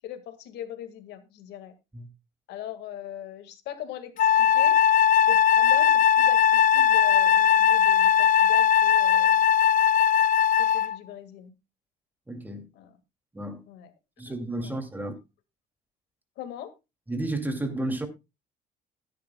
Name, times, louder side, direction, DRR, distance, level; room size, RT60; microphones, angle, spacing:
voice 1, 0.0-1.7 2.5-4.8 5.3-9.5 10.6-11.5 12.7-13.0 13.7-13.9 14.3-14.4 14.6-14.8 16.4-16.7, left 11 dB, 85° left, 1.9 m, -40 dB
Wind instrument woodwind instrument, 4.2-11.0, left 9 dB, 50° left, 0.5 m, -19 dB
voice 2, 12.3-12.7 13.3-13.6 14.2-15.1 17.1-18.1, right 2 dB, 10° right, 2.5 m, -32 dB
16.0 x 10.0 x 2.3 m
cardioid pair, 110°, 17 cm